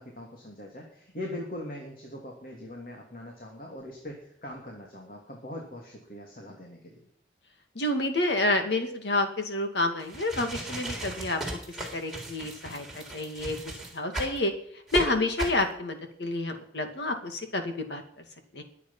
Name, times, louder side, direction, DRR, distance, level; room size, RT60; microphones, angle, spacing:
voice 1, 0.0-7.0, left 1 dB, 50° left, -1 dB, 2.8 m, -41 dB
voice 2, 7.8-11.4 11.9-13.6 13.9-14.5 14.9-18.0 18.5-18.6, left 2 dB, 80° left, 5 dB, 2.3 m, -29 dB
sound 1, 10.0-14.4 14.9-15.0 15.4-15.6, right 1 dB, ahead, 3.6 m, -36 dB
22.0 x 8.5 x 5.7 m, 0.68 s
head